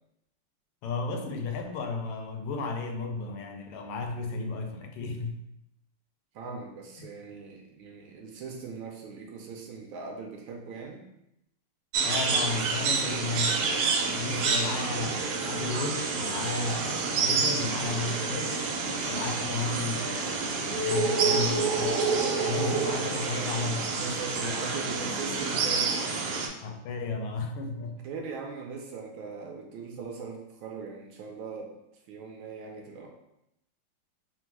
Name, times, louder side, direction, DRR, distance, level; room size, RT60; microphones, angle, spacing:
voice 1, 0.8-5.4 7.0-7.1 12.0-13.6 14.0-18.6 19.1-24.6 24.9-25.0 26.6-28.0, left 3 dB, 80° left, 4 dB, 1.5 m, -34 dB
voice 2, 6.3-11.0 23.9-26.4 28.0-31.7 32.1-33.1, right 4 dB, 70° right, 1 dB, 1.3 m, -40 dB
sound 1, 11.9-26.5, right 4 dB, 90° right, 1.5 m, -28 dB
4.0 x 2.1 x 4.5 m, 0.83 s
omnidirectional pair, 2.4 m